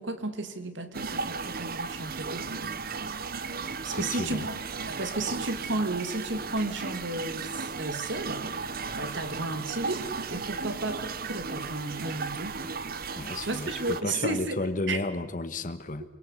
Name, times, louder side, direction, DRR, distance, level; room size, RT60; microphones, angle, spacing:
voice 1, 0.0-2.5 3.8-8.5 8.9-12.6 13.4-15.0, right 2 dB, 70° right, 2.8 m, -33 dB
sound 1, 0.9-14.0, right 4 dB, 50° right, 1.1 m, -35 dB
voice 2, 3.8-4.4 13.1-16.0, left 2 dB, 45° left, 1.4 m, -33 dB
28.0 x 23.0 x 8.4 m
head